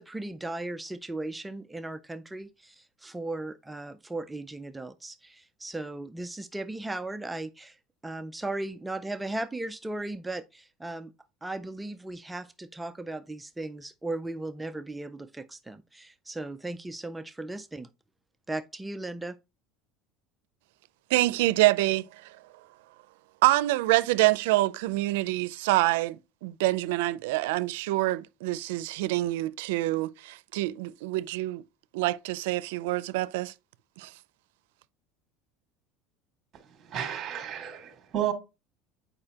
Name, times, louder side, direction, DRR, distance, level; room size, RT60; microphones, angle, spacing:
voice 1, 0.0-7.8 8.0-11.1 11.4-17.9 18.5-19.4, right 2 dB, 5° right, 0.3 m, -37 dB
voice 2, 21.1-22.1 23.4-31.6 31.9-33.5 34.0-34.1, right 18 dB, 90° right, 0.4 m, -26 dB
voice 3, 36.7-38.3, right 10 dB, 30° right, 1.7 m, -32 dB
8.7 x 4.9 x 2.9 m
cardioid pair, 155°, 0 cm